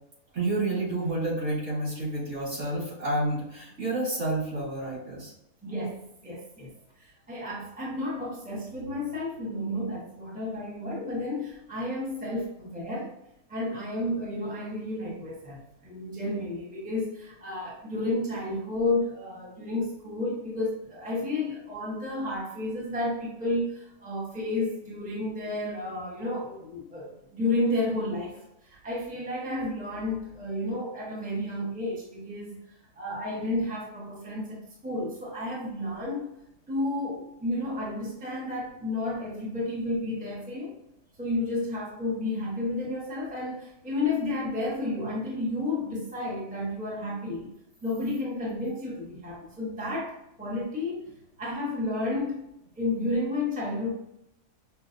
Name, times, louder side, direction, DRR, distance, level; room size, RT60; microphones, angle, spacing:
voice 1, 0.3-5.3, right 2 dB, 50° right, -7 dB, 2.0 m, -29 dB
voice 2, 5.6-6.7 7.0-13.1 13.5-32.6 32.9-36.3 36.7-40.8 41.2-47.5 47.8-51.1 51.4-52.5 52.8-53.9, left 2 dB, 5° right, -5 dB, 0.8 m, -31 dB
5.6 x 2.5 x 2.5 m, 0.82 s
omnidirectional pair, 1.5 m